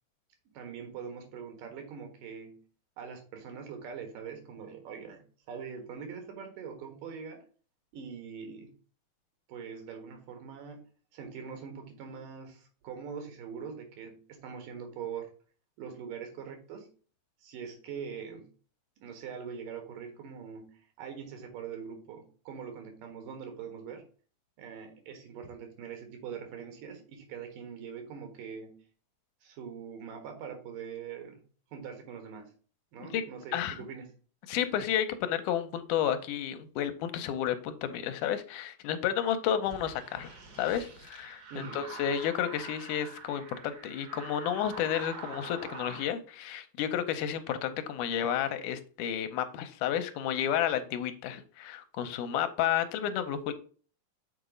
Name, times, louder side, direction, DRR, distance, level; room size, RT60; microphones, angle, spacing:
voice 1, 0.5-2.6 3.0-7.4 7.9-8.7 9.5-10.8 11.1-15.3 15.8-16.9 17.4-18.5 19.0-24.0 24.6-28.8 29.4-31.4 31.7-32.5 32.9-34.1 41.5-41.8, right 6 dB, 90° right, 5 dB, 3.1 m, -43 dB
voice 2, 34.5-53.5, left 10 dB, 80° left, 10 dB, 2.1 m, -31 dB
sound 1, 39.6-46.1, right 4 dB, 65° right, 0.9 m, -45 dB
6.6 x 3.9 x 5.1 m, 0.40 s
omnidirectional pair, 3.7 m